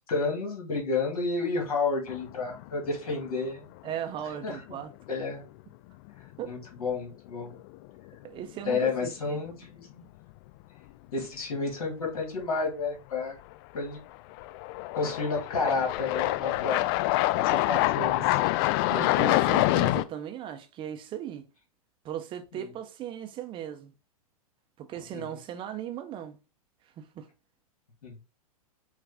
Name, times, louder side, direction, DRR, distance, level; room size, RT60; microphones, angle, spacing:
voice 1, 0.1-3.7 4.4-4.8 5.1-5.4 6.5-7.6 8.7-10.0 11.1-13.4 13.7-14.0 14.9-16.8 17.4-18.3 22.5-22.7 25.1-25.3 28.0-28.1, left 4 dB, 70° left, 2.0 m, -31 dB
sound 1, 2.1-2.7 3.1-3.2 6.1-6.2 7.5-7.7 8.1-8.2 13.5-13.6 14.4-20.0, left 18 dB, 35° left, 0.4 m, -26 dB
voice 2, 3.8-4.9 6.4-6.5 8.2-9.4 18.9-21.5 22.0-23.9 24.8-26.4 27.0-27.3, right 10 dB, 25° right, 0.6 m, -37 dB
5.9 x 2.4 x 3.4 m
hypercardioid pair, 105°, 19 cm